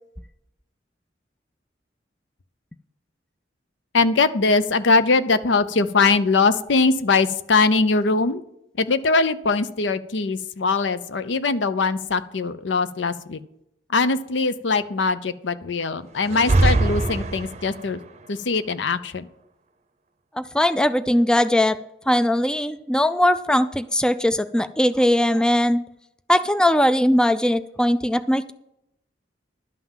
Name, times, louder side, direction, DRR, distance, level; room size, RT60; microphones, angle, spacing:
voice 1, 3.9-8.4 8.8-13.4 13.9-18.0 18.3-19.3, left 3 dB, 80° left, 13 dB, 0.6 m, -21 dB
sound 1, 16.2-17.9, right 2 dB, 40° right, 0.7 m, -21 dB
voice 2, 20.4-21.8 22.1-25.8 26.3-28.5, left 1 dB, 5° left, 13 dB, 0.3 m, -20 dB
11.5 x 5.8 x 7.3 m, 0.81 s
head